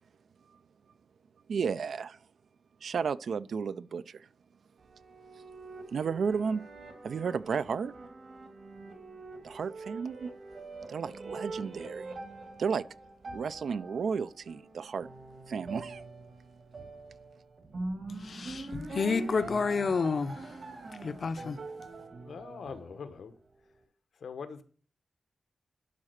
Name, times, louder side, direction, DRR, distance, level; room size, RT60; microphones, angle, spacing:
voice 1, 1.5-2.2 2.8-4.3 5.9-6.6 7.0-7.9 9.4-10.3 10.9-12.1 12.6-12.9 13.3-15.1 15.5-16.0, right 6 dB, 75° right, 0.4 m, -33 dB
sound 1, 4.8-23.4, right 2 dB, 55° right, 1.7 m, -44 dB
voice 2, 18.2-20.4 21.0-21.6, left 4 dB, 50° left, 0.5 m, -30 dB
voice 3, 22.2-23.3 24.2-24.6, left 6 dB, 90° left, 0.9 m, -42 dB
12.0 x 4.2 x 6.4 m
wide cardioid pair, 180°, 0 cm